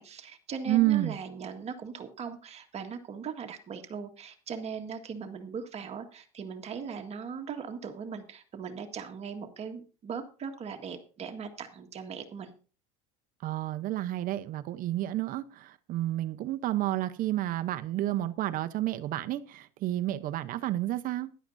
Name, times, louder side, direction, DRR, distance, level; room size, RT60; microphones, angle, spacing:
voice 1, 0.0-12.5, right 6 dB, 35° right, 1.8 m, -39 dB
voice 2, 0.7-1.2 13.4-21.3, right 14 dB, 50° right, 0.9 m, -30 dB
15.5 x 11.0 x 2.7 m
supercardioid pair, 105°, 18 cm